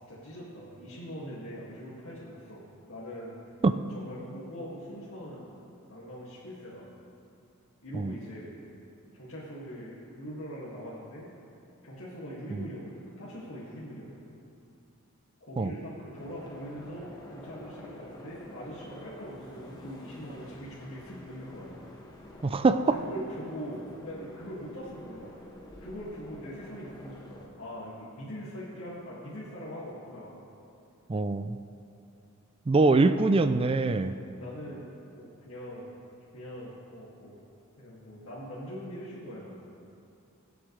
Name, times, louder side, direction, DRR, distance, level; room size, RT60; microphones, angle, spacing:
voice 1, 0.1-3.4 3.9-5.5 5.9-6.9 7.8-8.5 9.1-11.3 11.8-14.3 15.5-21.8 22.9-25.3 25.8-30.5 32.8-33.1 34.4-35.9 36.3-37.4 37.8-39.7, equal, 70° left, -8 dB, 2.1 m, -42 dB
sound 1, 16.2-27.5, left 1 dB, 20° left, 1.3 m, -48 dB
voice 2, 22.4-23.0 31.1-31.6 32.7-34.2, right 3 dB, 25° right, 10 dB, 0.3 m, -23 dB
23.0 x 8.0 x 3.2 m, 2.7 s
head